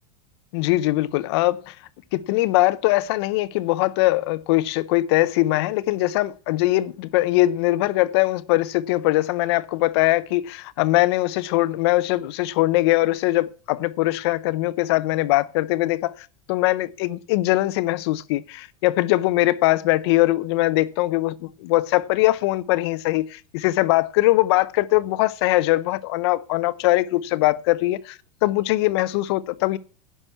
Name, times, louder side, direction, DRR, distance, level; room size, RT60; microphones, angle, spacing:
voice 1, 0.5-1.7 2.1-16.1 16.5-29.8, left 18 dB, 45° left, 0.7 m, -21 dB
11.0 x 6.1 x 8.3 m
supercardioid pair, 175°, 18 cm